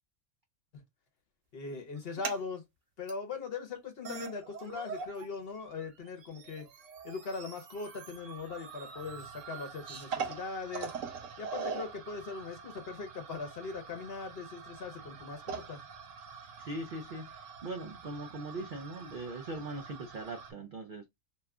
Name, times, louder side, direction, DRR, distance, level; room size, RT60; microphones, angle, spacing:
voice 1, 1.5-2.6 3.0-6.7 7.0-10.9 11.4-15.8, left 4 dB, 50° left, 0.9 m, -40 dB
sound 1, 2.0-2.4 3.1-3.2 3.8-3.9 4.0-5.3 5.6-20.5, right 5 dB, 65° right, 1.1 m, -44 dB
voice 2, 16.6-21.0, right 2 dB, 85° right, 0.4 m, -40 dB
2.9 x 2.3 x 3.4 m
omnidirectional pair, 1.5 m